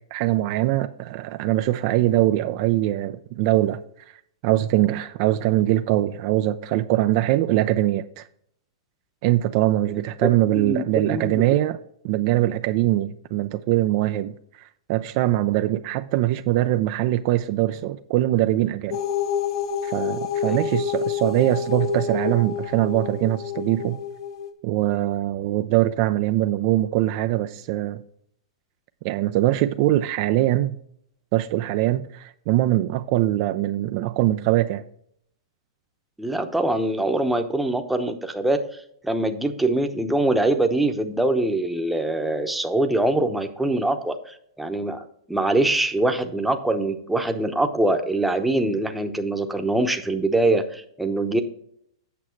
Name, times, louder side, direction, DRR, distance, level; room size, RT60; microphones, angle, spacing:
voice 1, 0.1-3.8 4.4-8.2 9.2-11.8 12.0-19.0 19.8-24.0 24.6-28.0 29.0-30.8 31.3-34.8, right 15 dB, 45° right, 0.4 m, -22 dB
voice 2, 10.5-11.4 20.4-20.6 36.2-38.7 39.0-51.4, right 2 dB, 5° right, 0.9 m, -23 dB
sound 1, 18.9-24.5, left 6 dB, 65° left, 1.2 m, -28 dB
8.5 x 6.3 x 4.5 m
hypercardioid pair, 125°, 3 cm